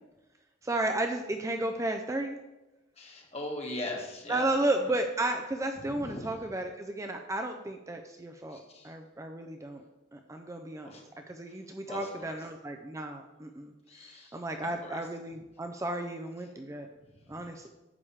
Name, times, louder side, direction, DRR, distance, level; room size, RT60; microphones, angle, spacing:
voice 1, 0.6-2.4 4.3-9.8 10.1-10.9 11.3-16.9 17.3-17.7, right 2 dB, 15° right, 5 dB, 0.5 m, -33 dB
voice 2, 3.0-4.5 5.8-6.3 8.5-8.9 10.8-11.0 11.9-12.3 13.9-15.1 17.2-17.4, left 1 dB, 35° left, -1 dB, 1.8 m, -40 dB
9.7 x 3.5 x 7.1 m, 1.0 s
head